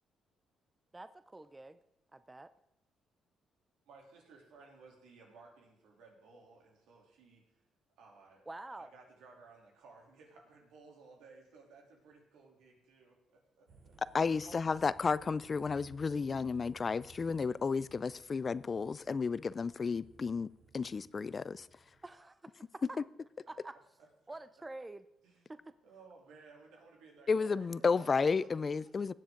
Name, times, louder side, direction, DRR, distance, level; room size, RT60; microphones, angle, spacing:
voice 1, 0.9-1.8 2.1-2.5 8.5-8.9 14.5-14.8 22.0-22.8 23.5-23.7 24.3-25.0 25.5-25.7, right 2 dB, 15° right, 0.5 m, -48 dB
voice 2, 3.9-7.6 8.0-13.9 23.5-23.6 24.0-24.4 25.2-25.5 25.8-28.5 28.8-28.9, right 4 dB, 90° right, 3.0 m, -58 dB
sound 1, 13.7-22.1, right 3 dB, 70° right, 4.4 m, -60 dB
voice 3, 14.1-20.5 20.7-21.7 23.0-23.1 27.3-29.1, left 5 dB, 35° left, 0.3 m, -32 dB
18.5 x 7.7 x 3.8 m
cardioid pair, 90°, 0 cm